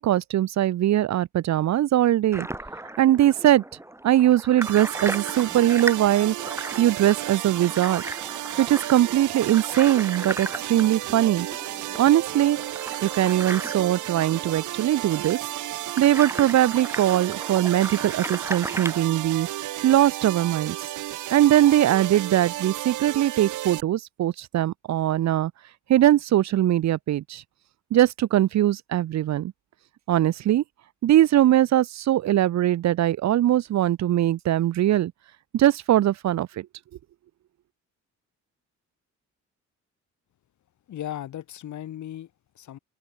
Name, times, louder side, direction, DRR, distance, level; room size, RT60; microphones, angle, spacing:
voice 1, 0.0-2.5 3.0-3.6 4.0-6.3 6.8-8.0 8.6-11.5 12.0-12.6 13.0-15.4 16.0-19.5 19.8-20.9 21.3-25.5 25.9-27.4 27.9-29.5 30.1-30.6 31.0-35.1 35.5-36.7, right 13 dB, 65° right, 0.9 m, -21 dB
sound 1, 2.3-19.0, right 1 dB, 10° right, 4.6 m, -36 dB
sound 2, 4.6-23.8, right 15 dB, 80° right, 1.5 m, -33 dB
voice 2, 40.9-42.8, left 11 dB, 70° left, 4.4 m, -37 dB
open air
cardioid pair, 90°, 30 cm